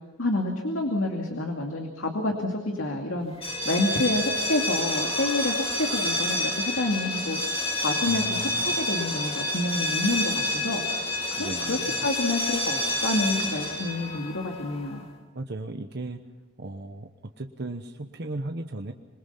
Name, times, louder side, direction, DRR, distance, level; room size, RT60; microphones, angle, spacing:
voice 1, 0.2-3.3 3.6-7.4 7.8-11.1 11.3-15.1, left 2 dB, 85° left, 2 dB, 2.5 m, -28 dB
sound 1, 3.3-15.0, left 1 dB, 30° left, 2.3 m, -29 dB
voice 2, 8.1-8.6 11.3-12.0 15.3-16.2 16.6-18.9, right 2 dB, 55° right, 5 dB, 1.1 m, -36 dB
26.5 x 21.5 x 5.8 m, 1.2 s
head